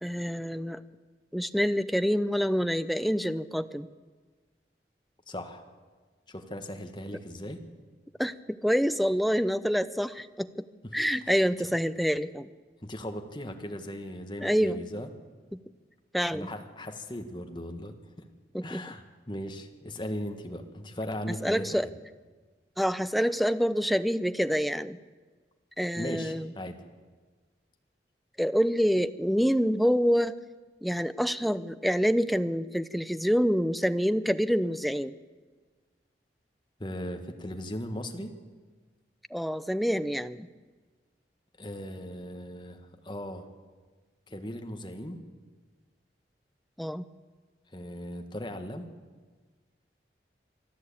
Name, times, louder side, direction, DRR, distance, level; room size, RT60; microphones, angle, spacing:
voice 1, 0.0-0.8 1.3-3.9 8.2-10.5 10.9-12.5 14.4-14.8 15.5-15.6 16.1-16.5 18.5-18.8 21.4-21.9 22.8-25.0 25.8-26.5 28.4-30.4 30.8-35.1 39.3-40.5 46.8-47.0, equal, ahead, 12 dB, 0.5 m, -27 dB
voice 2, 5.3-5.6 6.3-7.6 12.8-15.1 16.3-17.9 18.6-21.6 26.0-26.8 36.8-38.3 41.6-43.5 44.3-45.2 47.7-48.9, equal, 25° left, 5 dB, 1.7 m, -38 dB
24.5 x 13.0 x 8.7 m, 1.4 s
head